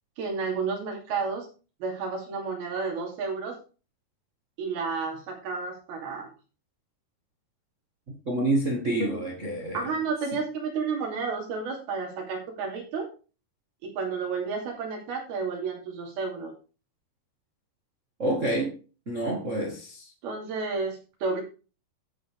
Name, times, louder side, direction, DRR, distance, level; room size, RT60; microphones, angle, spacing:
voice 1, 0.2-1.5 1.8-3.6 4.6-6.3 9.0-9.2 9.7-13.1 13.8-16.5 20.2-21.4, right 4 dB, 70° right, 4.5 m, -31 dB
voice 2, 8.3-9.9 18.2-18.7 19.1-20.1, right 1 dB, 45° right, 0.9 m, -28 dB
11.0 x 8.0 x 3.6 m
omnidirectional pair, 4.6 m